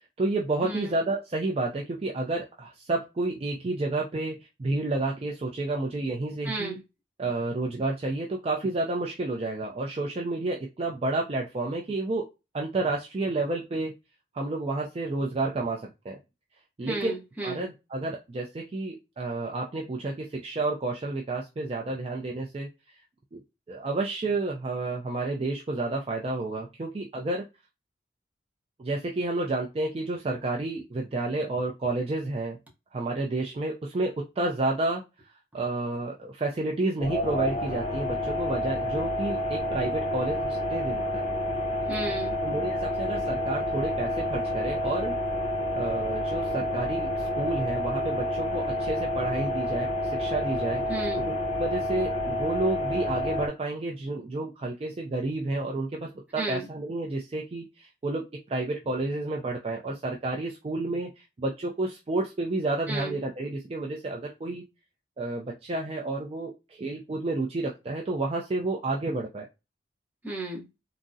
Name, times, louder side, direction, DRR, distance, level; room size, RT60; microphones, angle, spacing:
voice 1, 0.2-6.8 7.2-12.3 12.5-13.9 14.3-16.2 16.8-17.2 17.4-22.7 23.3-23.4 23.7-27.5 28.8-32.6 32.9-35.0 35.5-41.3 42.4-45.1 45.7-50.8 51.2-64.6 65.2-69.5, right 2 dB, 30° right, -1 dB, 0.4 m, -30 dB
voice 2, 6.5-6.8 16.9-17.6 41.9-42.3 50.9-51.3 56.4-56.7 62.9-63.2 70.2-70.6, right 2 dB, 10° right, -3 dB, 0.8 m, -33 dB
sound 1, 37.0-53.5, left 1 dB, 30° left, 0.6 m, -29 dB
3.5 x 2.0 x 2.6 m, 0.25 s
head